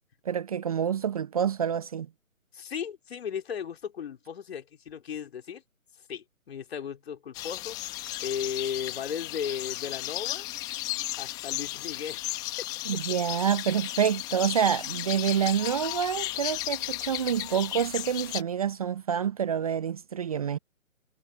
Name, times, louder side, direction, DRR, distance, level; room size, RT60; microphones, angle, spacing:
voice 1, 0.2-2.1 12.9-20.6, right 8 dB, 25° right, 0.9 m, -27 dB
voice 2, 2.5-5.6 6.1-7.8 8.2-10.5 11.2-12.2, left 8 dB, 45° left, 3.8 m, -35 dB
sound 1, 7.3-18.4, left 17 dB, 10° left, 1.1 m, -34 dB
figure-of-eight pair, 150°, 42 cm